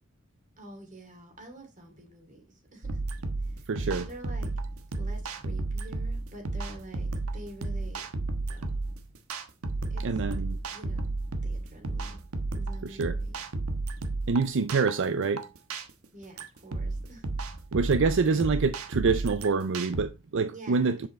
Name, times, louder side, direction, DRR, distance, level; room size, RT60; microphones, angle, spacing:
voice 1, 0.6-2.9 3.4-3.7 4.1-4.5 5.0-8.1 8.5-8.8 9.9-10.0 10.7-11.1 11.4-12.2 12.5-13.4 16.1-17.2 18.3-18.7 20.5-20.9, right 1 dB, 35° right, 2.7 m, -47 dB
sound 1, 2.8-20.0, right 2 dB, 80° right, 1.2 m, -33 dB
voice 2, 3.7-4.1 10.0-10.6 12.8-13.2 14.3-15.5 17.7-21.1, right 4 dB, 60° right, 0.5 m, -26 dB
7.8 x 6.9 x 3.2 m
head